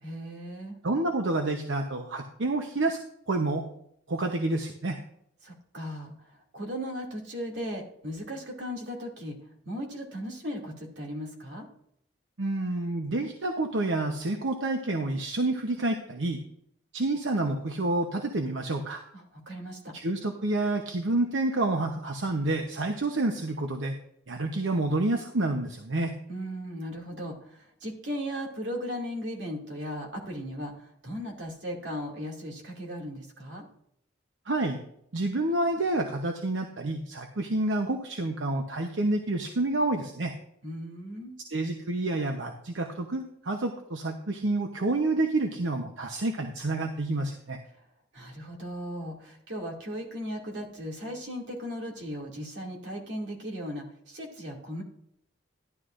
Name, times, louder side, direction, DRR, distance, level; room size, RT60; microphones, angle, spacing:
voice 1, 0.0-0.8 5.4-9.4 9.6-11.7 19.1-20.0 26.3-33.7 40.6-41.3 48.1-54.8, equal, 70° right, 0 dB, 2.5 m, -37 dB
voice 2, 0.8-3.0 3.3-3.6 4.1-5.0 12.4-16.4 16.9-19.0 19.9-23.9 24.3-26.1 34.5-34.8 35.1-40.3 41.5-47.6, right 2 dB, 85° right, 4 dB, 0.9 m, -28 dB
12.0 x 11.0 x 2.6 m, 0.70 s
head